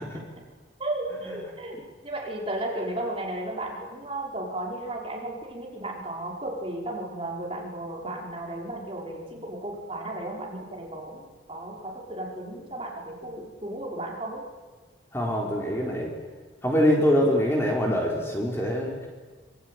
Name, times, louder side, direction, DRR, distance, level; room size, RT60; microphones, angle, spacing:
voice 1, 0.8-1.8 2.0-14.4, right 1 dB, 30° right, -2 dB, 5.5 m, -34 dB
voice 2, 15.1-16.1 16.6-19.1, equal, 15° left, -1 dB, 4.2 m, -24 dB
26.0 x 23.0 x 9.5 m, 1.4 s
head